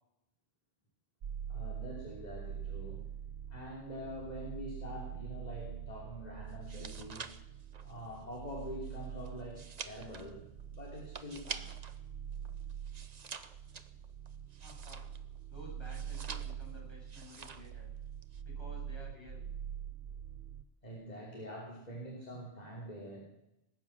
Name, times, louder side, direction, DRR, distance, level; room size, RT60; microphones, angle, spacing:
sound 1, 1.2-20.6, right 9 dB, 75° right, 1.0 m, -44 dB
voice 1, 1.5-3.0 3.5-7.3 7.8-11.7 12.4-12.5 20.8-23.2, equal, 40° left, -1 dB, 3.2 m, -45 dB
sound 2, 6.5-12.0 12.3-15.4 15.8-16.7 17.1-17.8 18.0-18.4, right 5 dB, 45° right, 0.9 m, -47 dB
voice 2, 14.6-15.0 15.5-17.9 18.4-19.4, left 1 dB, 25° left, -4 dB, 7.8 m, -53 dB
19.5 x 9.4 x 7.4 m, 0.87 s
omnidirectional pair, 1.0 m